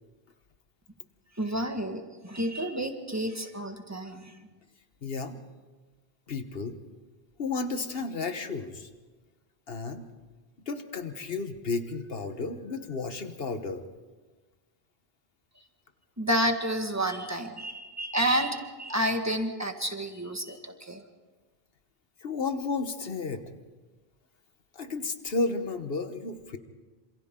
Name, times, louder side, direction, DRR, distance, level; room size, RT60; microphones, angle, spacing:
voice 1, 1.3-4.4 16.2-21.0, right 1 dB, 15° right, 5 dB, 1.7 m, -30 dB
voice 2, 5.0-5.4 6.3-6.8 7.4-8.9 9.7-10.0 10.7-13.8 22.2-23.4 24.7-26.6, left 3 dB, 70° left, 8 dB, 1.4 m, -32 dB
27.0 x 27.0 x 3.8 m, 1.3 s
omnidirectional pair, 1.0 m